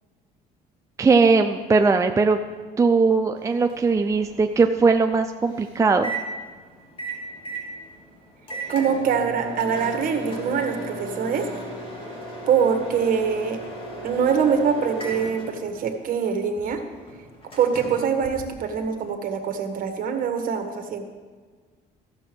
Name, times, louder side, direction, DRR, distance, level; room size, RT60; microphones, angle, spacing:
voice 1, 1.0-2.4 2.8-6.1, right 4 dB, 20° right, 6 dB, 0.5 m, -19 dB
Microwave oven, 3.4-19.0, right 2 dB, 30° left, 3.0 m, -37 dB
voice 2, 8.7-11.5 12.5-13.6 14.0-16.8 17.6-21.1, right 6 dB, 55° right, 5 dB, 1.5 m, -24 dB
13.5 x 6.9 x 6.2 m, 1.5 s
cardioid pair, 110°, 17 cm